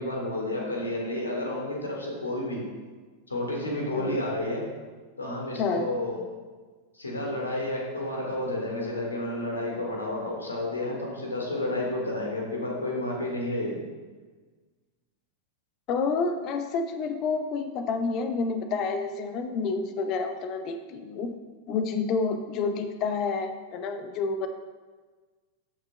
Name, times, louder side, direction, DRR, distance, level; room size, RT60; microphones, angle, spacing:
voice 1, 0.0-2.6 3.3-4.6 5.2-6.2 6.9-13.8, left 1 dB, 80° left, -1 dB, 1.7 m, -31 dB
voice 2, 3.9-4.2 5.6-5.9 15.9-21.3 21.7-24.5, left 4 dB, 40° left, 8 dB, 0.6 m, -29 dB
13.5 x 5.8 x 2.2 m, 1.4 s
figure-of-eight pair, 90°, 0 cm